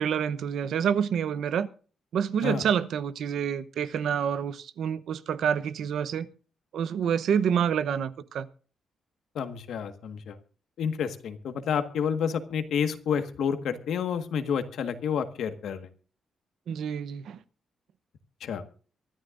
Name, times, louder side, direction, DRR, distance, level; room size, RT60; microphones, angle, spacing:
voice 1, 0.0-1.7 2.1-6.3 6.7-8.5 16.7-17.4, right 8 dB, 70° right, 0.8 m, -27 dB
voice 2, 9.3-10.4 10.8-15.9 18.4-18.6, left 7 dB, 75° left, 1.6 m, -29 dB
24.0 x 13.0 x 2.6 m
cardioid pair, 145°, 0 cm